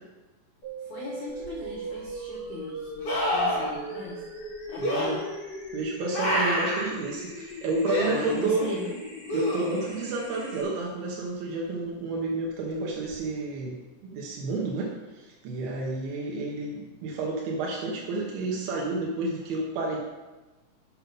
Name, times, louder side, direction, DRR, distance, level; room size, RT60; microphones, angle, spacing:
sound 1, 0.6-10.6, equal, 30° left, 3.0 m, -39 dB
voice 1, 0.8-4.2 4.7-5.2 8.0-9.0, left 2 dB, 75° left, -3 dB, 1.8 m, -37 dB
sound 2, 1.4-1.5 3.0-3.7 4.8-5.1 6.1-6.9 7.8-8.1 9.3-10.0 13.1-13.2, left 1 dB, 50° left, 1.8 m, -27 dB
voice 2, 4.8-5.2 5.7-8.7 9.3-13.8 14.0-20.0, right 3 dB, 80° right, -2 dB, 2.1 m, -30 dB
8.1 x 6.0 x 5.4 m, 1.2 s
omnidirectional pair, 5.7 m